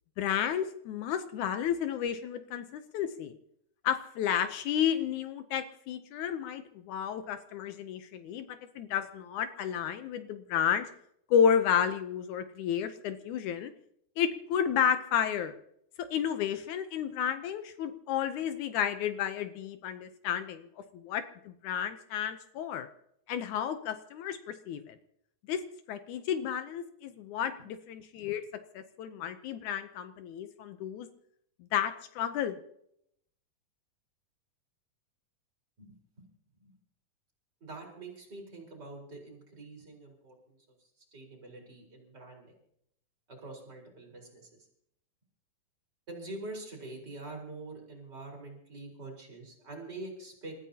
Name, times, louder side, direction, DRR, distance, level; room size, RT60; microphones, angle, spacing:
voice 1, 0.2-3.4 3.8-8.5 8.8-10.9 11.3-13.7 14.2-15.5 16.1-20.7 20.9-22.9 23.3-25.0 25.5-25.6 25.9-28.4 28.7-31.1 31.7-32.6, left 8 dB, 75° left, 9 dB, 2.1 m, -31 dB
voice 2, 35.8-36.3 36.6-36.7 37.6-40.6 41.1-42.6 43.3-44.5 46.1-50.5, right 2 dB, 30° right, -1 dB, 4.7 m, -45 dB
28.5 x 14.0 x 2.8 m, 0.72 s
omnidirectional pair, 3.6 m